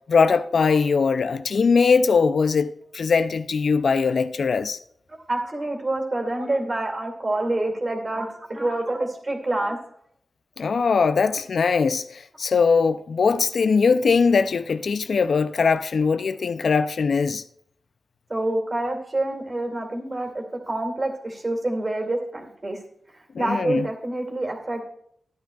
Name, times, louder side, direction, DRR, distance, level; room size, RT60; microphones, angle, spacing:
voice 1, 0.1-4.8 10.6-12.0 12.4-17.4 23.4-23.9, left 5 dB, 75° left, 0.4 m, -21 dB
voice 2, 5.1-9.8 18.3-22.8 23.1-24.8, right 2 dB, 35° right, 2.3 m, -27 dB
14.0 x 10.5 x 2.3 m
wide cardioid pair, 90°, 0 cm